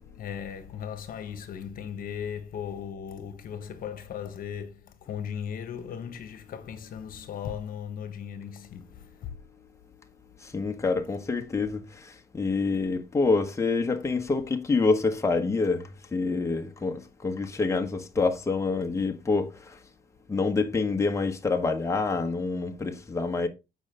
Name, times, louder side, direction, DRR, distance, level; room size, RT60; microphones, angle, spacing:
voice 1, 0.0-9.3, left 8 dB, 55° left, 1.3 m, -37 dB
voice 2, 10.4-19.8 20.3-23.5, left 4 dB, 15° left, 1.3 m, -27 dB
8.7 x 5.5 x 3.7 m
cardioid pair, 110°, 17 cm